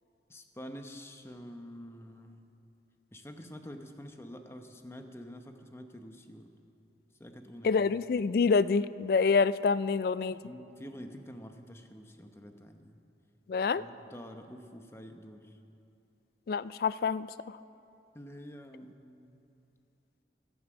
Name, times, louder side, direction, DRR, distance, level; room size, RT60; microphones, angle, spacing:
voice 1, 0.3-2.4 3.1-6.5 7.2-7.8 10.4-13.0 13.7-15.6 18.1-19.5, equal, 15° left, 6 dB, 0.8 m, -47 dB
voice 2, 7.6-10.4 13.5-13.8 16.5-17.3, left 5 dB, 55° left, 17 dB, 0.3 m, -27 dB
15.0 x 12.0 x 6.1 m, 2.7 s
head